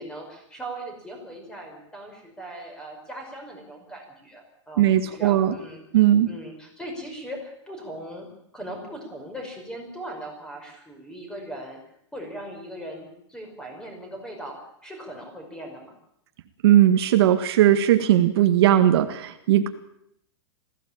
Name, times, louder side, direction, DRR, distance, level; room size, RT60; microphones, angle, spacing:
voice 1, 0.0-8.3 8.5-11.8 12.1-15.9, right 1 dB, 5° left, 3 dB, 5.5 m, -39 dB
voice 2, 4.8-5.5 5.9-6.3 16.6-19.7, right 12 dB, 60° right, 7 dB, 1.9 m, -18 dB
21.0 x 15.5 x 8.9 m, 0.75 s
hypercardioid pair, 155°, 15 cm